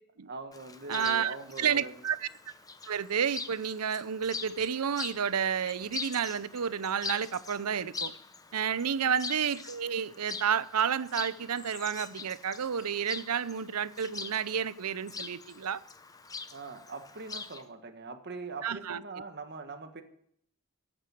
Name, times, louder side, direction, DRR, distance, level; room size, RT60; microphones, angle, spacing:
voice 1, 0.3-2.0 8.8-9.1 16.5-20.0, right 3 dB, 50° right, 1.5 m, -42 dB
Chirp tweet, 0.5-17.6, left 4 dB, 15° left, 0.7 m, -43 dB
voice 2, 0.9-2.2 2.9-8.1 8.5-15.8 18.6-19.0, right 7 dB, 85° right, 0.6 m, -30 dB
14.0 x 8.9 x 7.5 m
head